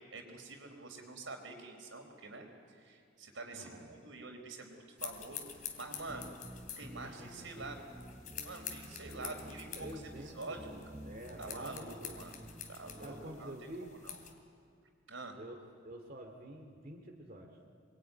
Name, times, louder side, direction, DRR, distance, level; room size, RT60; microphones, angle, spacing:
voice 1, 0.1-2.5 2.8-5.5 5.8-6.3 6.8-8.1 8.4-9.9 10.4-10.6 11.4-12.4 12.7-13.5 14.0-14.2 15.1-15.3, right 3 dB, 80° right, 3 dB, 4.3 m, -46 dB
voice 2, 3.5-4.0 7.0-7.6 9.4-12.2 13.0-13.9 15.4-17.6, right 1 dB, 45° right, 1 dB, 2.4 m, -49 dB
sound 1, 5.0-14.3, left 8 dB, 45° left, 2.9 m, -48 dB
sound 2, 6.1-13.5, equal, 10° right, 1.0 m, -52 dB
27.0 x 22.5 x 9.5 m, 2.4 s
head